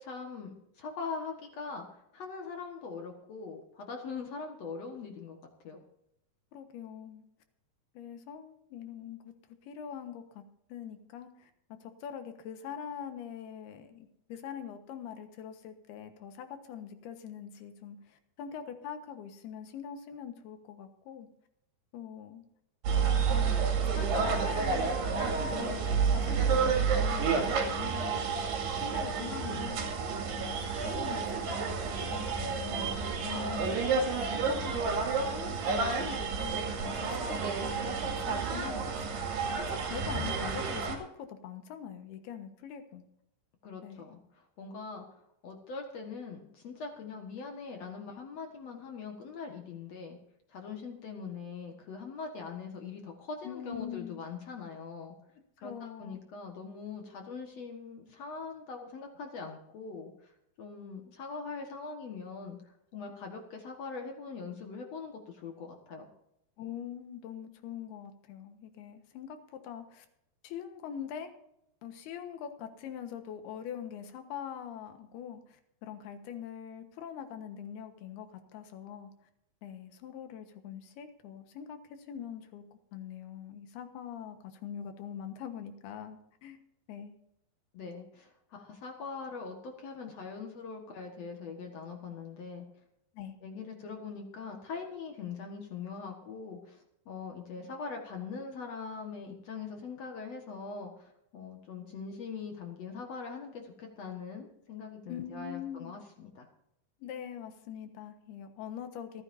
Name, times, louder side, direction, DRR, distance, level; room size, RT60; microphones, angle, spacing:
voice 1, 0.0-5.4 5.6-5.8 33.2-33.8 43.6-50.2 50.5-55.2 55.6-60.3 60.6-66.1 87.7-92.7 93.4-106.5, left 5 dB, 55° left, 2 dB, 2.2 m, -42 dB
voice 2, 6.5-7.2 7.9-9.3 9.6-10.4 10.7-11.5 11.8-21.3 21.9-22.4 22.9-23.7 23.9-28.5 28.8-29.9 30.4-33.0 33.5-33.9 34.3-39.0 39.6-43.0 43.8-44.0 53.4-54.2 55.6-56.2 66.6-70.1 70.4-71.3 71.8-79.1 79.6-82.6 82.9-86.6 86.9-87.1 93.1-93.3 105.1-105.9 107.0-109.2, left 8 dB, 80° left, 7 dB, 3.3 m, -43 dB
sound 1, 22.8-41.0, right 5 dB, 90° right, 4.3 m, -30 dB
28.0 x 9.8 x 2.7 m, 0.77 s
omnidirectional pair, 4.6 m